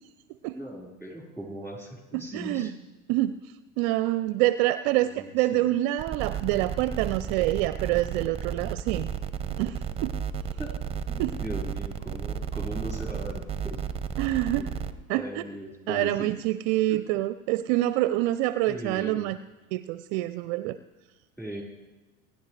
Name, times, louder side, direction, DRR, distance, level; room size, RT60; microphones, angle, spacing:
voice 1, 0.5-2.7 4.9-5.7 10.6-10.8 11.1-13.8 14.5-14.8 15.1-16.3 16.9-17.0 18.7-19.3 21.4-21.6, equal, 5° left, -3 dB, 4.7 m, -39 dB
voice 2, 2.1-2.7 3.1-3.3 3.8-9.1 9.6-10.1 11.2-11.3 14.2-14.7 15.1-15.4 15.9-19.4 19.7-20.8, right 16 dB, 50° right, 14 dB, 0.5 m, -26 dB
sound 1, 6.0-14.9, right 7 dB, 15° right, 0.8 m, -33 dB
27.0 x 10.5 x 3.3 m, 1.1 s
hypercardioid pair, 90°, 43 cm